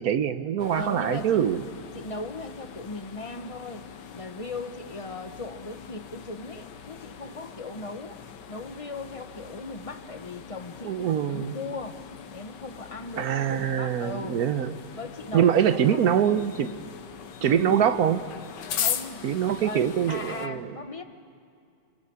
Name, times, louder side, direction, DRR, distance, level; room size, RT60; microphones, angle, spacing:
voice 1, 0.0-1.6 10.8-11.6 13.2-14.8 15.3-16.8 17.4-18.2 19.2-20.8, right 9 dB, 60° right, 11 dB, 1.3 m, -24 dB
sound 1, 0.6-20.5, left 8 dB, 80° left, 1.7 m, -40 dB
voice 2, 0.7-1.4 1.9-3.8 4.1-8.2 8.5-12.0 12.3-14.4 15.0-16.1 17.5-17.9 18.7-19.3 19.6-21.0, left 3 dB, 25° left, 7 dB, 1.0 m, -38 dB
29.0 x 21.0 x 8.7 m, 2.4 s
omnidirectional pair, 1.9 m